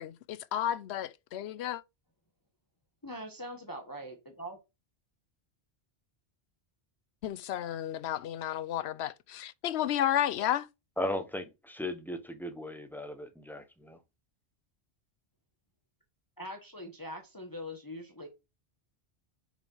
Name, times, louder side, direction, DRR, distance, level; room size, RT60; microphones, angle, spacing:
voice 1, 0.0-1.8 7.2-10.7, left 11 dB, 75° left, 0.8 m, -32 dB
voice 2, 3.0-4.6 16.4-18.3, equal, 20° left, 1.2 m, -42 dB
voice 3, 11.0-14.0, left 1 dB, ahead, 1.0 m, -37 dB
6.0 x 5.0 x 5.4 m
omnidirectional pair, 1.1 m